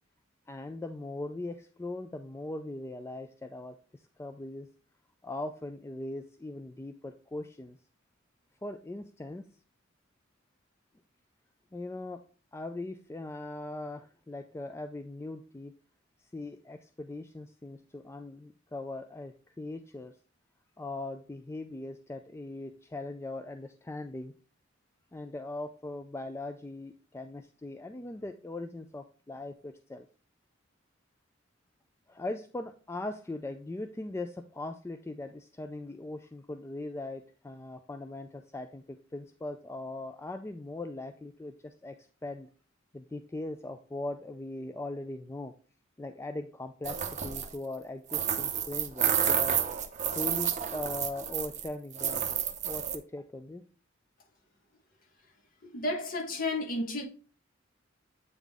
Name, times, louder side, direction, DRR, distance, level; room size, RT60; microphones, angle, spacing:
voice 1, 0.5-4.7 5.2-7.8 8.6-9.4 11.7-12.2 12.5-15.7 16.3-20.1 20.8-24.3 25.1-30.1 32.1-42.0 42.2-42.5 42.9-45.5 46.0-49.6 50.1-52.3 52.6-53.6, left 2 dB, 15° left, 0.3 m, -40 dB
sound 1, 46.8-47.6 48.1-51.7 51.9-53.0, right 9 dB, 35° right, 0.7 m, -30 dB
voice 2, 55.6-57.0, left 2 dB, 45° left, 1.4 m, -32 dB
8.1 x 3.8 x 3.5 m
head